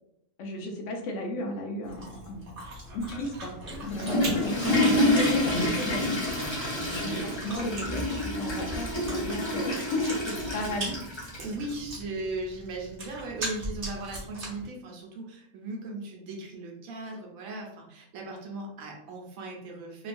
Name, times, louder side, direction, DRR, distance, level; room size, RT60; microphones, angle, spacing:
voice 1, 0.4-2.5 2.9-3.5 3.9-6.2 7.0-7.1 7.4-11.0, left 1 dB, 70° left, 3 dB, 0.8 m, -33 dB
Chewing mastication, 1.8-14.7, right 1 dB, 45° right, 1.0 m, -40 dB
Water / Toilet flush, 3.7-11.5, left 1 dB, 30° left, 0.5 m, -28 dB
voice 2, 4.1-4.4 6.8-7.7 10.4-10.7 11.4-20.1, right 2 dB, 75° right, 0 dB, 1.1 m, -38 dB
2.9 x 2.3 x 2.5 m, 0.77 s
omnidirectional pair, 1.5 m